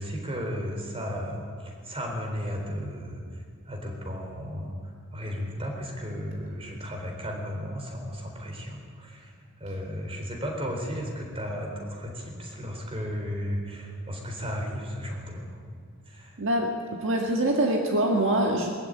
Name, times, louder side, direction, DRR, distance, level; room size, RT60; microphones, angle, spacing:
voice 1, 0.0-3.2 3.7-15.7 16.1-16.3, equal, 25° right, 1 dB, 3.9 m, -34 dB
voice 2, 16.4-18.7, right 1 dB, 55° right, 1 dB, 1.7 m, -24 dB
20.5 x 14.0 x 9.0 m, 2.1 s
head